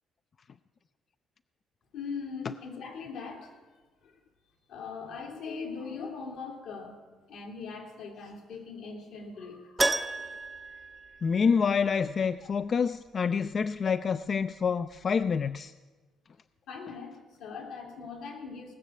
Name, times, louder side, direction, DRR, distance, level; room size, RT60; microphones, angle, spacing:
voice 1, 1.9-3.6 4.0-4.2 4.7-10.8 11.2-11.3 16.7-18.7, left 5 dB, 85° left, 1 dB, 2.7 m, -41 dB
Keyboard (musical), 9.8-11.8 12.1-12.2 14.9-15.0 15.2-15.3, right 2 dB, 15° right, 0.5 m, -32 dB
voice 2, 11.2-15.7, left 6 dB, 45° left, 12 dB, 0.3 m, -27 dB
18.0 x 6.5 x 7.9 m, 1.3 s
cardioid pair, 100°, 0 cm